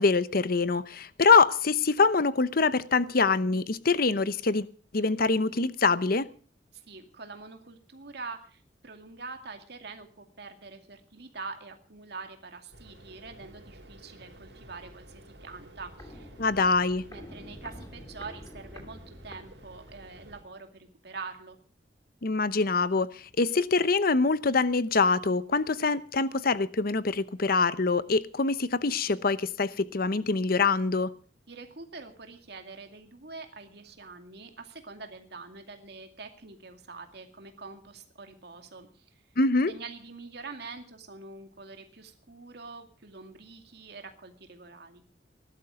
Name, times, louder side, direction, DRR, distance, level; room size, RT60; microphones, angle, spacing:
voice 1, 0.0-4.7 4.9-6.3 16.4-17.0 22.2-31.1 39.4-39.7, left 4 dB, 55° left, 0.9 m, -24 dB
voice 2, 6.7-16.3 17.1-21.6 31.5-39.1 39.7-45.0, right 4 dB, 65° right, 2.3 m, -45 dB
sound 1, 12.7-20.4, right 1 dB, 80° right, 5.2 m, -52 dB
Walk footsteps, 15.4-20.1 20.4-20.5, left 1 dB, 20° left, 2.6 m, -48 dB
19.0 x 12.0 x 5.0 m
head